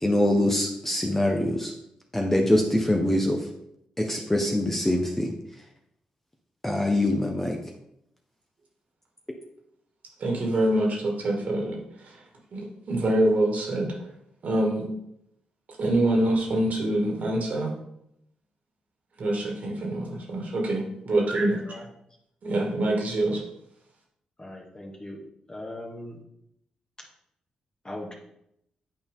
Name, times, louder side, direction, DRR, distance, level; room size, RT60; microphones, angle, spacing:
voice 1, 0.0-1.7 2.1-3.4 4.0-5.3 6.6-7.6, left 1 dB, 10° left, 2 dB, 1.1 m, -24 dB
voice 2, 10.2-12.2 12.5-13.9 14.4-14.9 15.8-17.7 19.2-21.8 22.4-23.4, right 1 dB, 60° right, -1 dB, 2.1 m, -25 dB
voice 3, 24.4-25.2 25.5-26.2 27.8-28.1, left 1 dB, 30° left, -1 dB, 2.0 m, -39 dB
8.5 x 4.3 x 3.7 m, 0.77 s
supercardioid pair, 45°, 3 cm